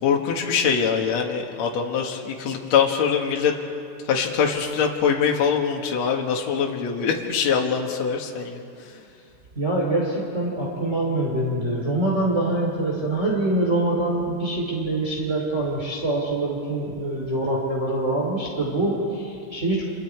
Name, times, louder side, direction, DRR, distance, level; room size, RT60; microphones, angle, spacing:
voice 1, 0.0-3.5 4.1-8.7, left 6 dB, 60° left, 1 dB, 2.7 m, -23 dB
voice 2, 9.5-19.8, right 2 dB, 20° right, -3 dB, 2.9 m, -24 dB
30.0 x 27.0 x 4.6 m, 2.5 s
omnidirectional pair, 3.8 m